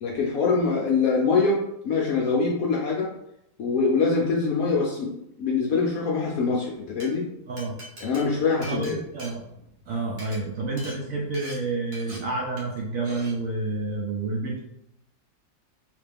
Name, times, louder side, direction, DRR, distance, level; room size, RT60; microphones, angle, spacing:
voice 1, 0.0-3.1 3.6-7.3 8.0-9.0, left 4 dB, 70° left, -2 dB, 0.8 m, -24 dB
Glass, 6.8-7.1 7.6-9.8 10.1-10.4 10.8-11.0 11.3-11.6 11.9-12.2 12.6-12.8 13.0-13.3, right 1 dB, 45° right, 1.3 m, -42 dB
voice 2, 8.7-9.4 9.9-14.6, right 3 dB, 65° right, -2 dB, 0.9 m, -29 dB
3.2 x 2.9 x 3.3 m, 0.82 s
omnidirectional pair, 1.9 m